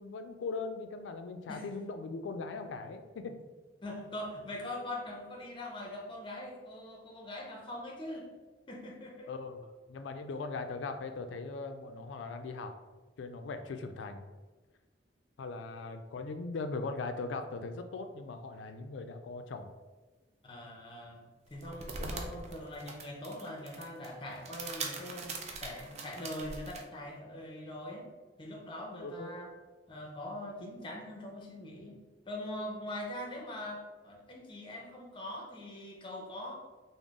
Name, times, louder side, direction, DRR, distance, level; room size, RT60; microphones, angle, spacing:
voice 1, 0.0-3.3 9.3-9.6 9.9-12.7 13.2-14.2 15.4-19.7 22.0-22.3 29.0-29.3, left 3 dB, 80° left, 8 dB, 0.3 m, -40 dB
voice 2, 3.8-8.3 8.7-9.3 20.4-21.2 21.5-28.1 28.4-29.5 29.9-32.0 32.3-36.6, left 1 dB, 25° left, 0 dB, 0.5 m, -42 dB
sound 1, 21.5-26.8, right 3 dB, 35° right, 0.4 m, -42 dB
3.8 x 2.0 x 3.5 m, 1.3 s
head